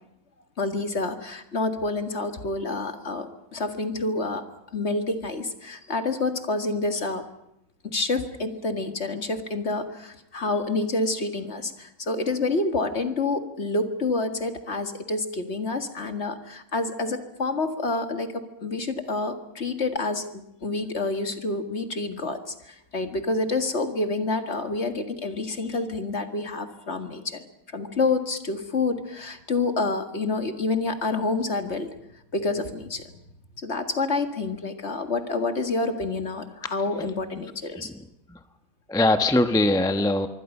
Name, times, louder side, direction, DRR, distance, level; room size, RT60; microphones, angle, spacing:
voice 1, 0.6-4.4 4.7-7.2 7.8-27.4 27.7-31.9 32.3-33.1 33.6-37.9, left 3 dB, 35° left, 7 dB, 1.9 m, -28 dB
voice 2, 37.8-38.4 38.9-40.3, left 2 dB, 5° left, 8 dB, 0.5 m, -22 dB
26.0 x 23.5 x 5.6 m, 0.79 s
omnidirectional pair, 2.3 m